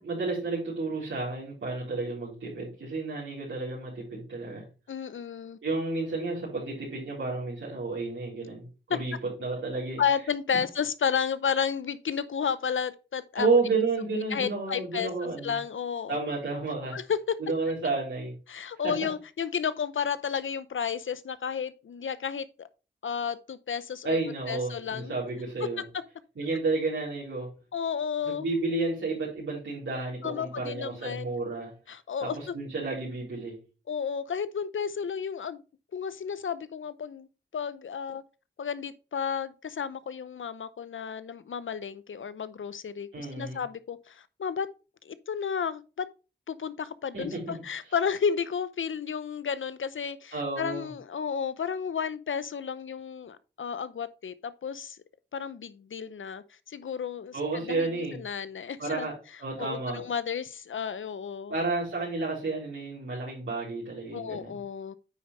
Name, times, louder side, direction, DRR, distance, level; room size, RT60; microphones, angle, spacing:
voice 1, 0.0-4.6 5.6-10.0 10.5-10.6 13.3-15.6 16.1-17.0 17.4-18.3 18.8-18.9 24.0-25.8 26.4-27.5 28.2-31.7 32.2-33.6 43.1-43.6 47.1-47.6 50.3-50.9 57.3-58.2 58.8-59.1 59.4-60.0 61.5-64.6, right 3 dB, 80° right, 4.2 m, -31 dB
voice 2, 4.9-5.6 8.9-9.0 10.0-13.5 14.3-15.1 15.4-16.2 16.9-17.4 18.5-22.7 23.0-24.2 24.5-25.1 25.9-26.0 27.7-28.5 30.2-31.3 31.9-32.5 33.9-35.6 35.9-37.3 37.5-38.2 38.6-44.7 45.0-46.1 46.5-55.0 55.3-59.1 59.6-61.5 64.1-64.9, left 7 dB, 80° left, 0.7 m, -32 dB
9.3 x 5.4 x 3.2 m
cardioid pair, 45°, 20 cm